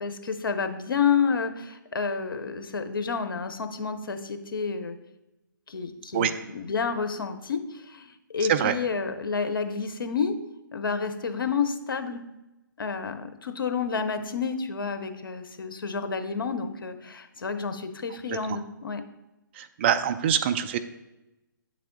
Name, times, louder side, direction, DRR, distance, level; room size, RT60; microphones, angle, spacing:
voice 1, 0.0-5.0 5.7-8.1 8.3-10.4 10.7-12.2 12.8-19.0, left 5 dB, 75° left, 8 dB, 0.7 m, -29 dB
voice 2, 19.6-20.8, right 9 dB, 30° right, 9 dB, 0.3 m, -24 dB
8.4 x 3.4 x 3.8 m, 0.99 s
figure-of-eight pair, 140°, 11 cm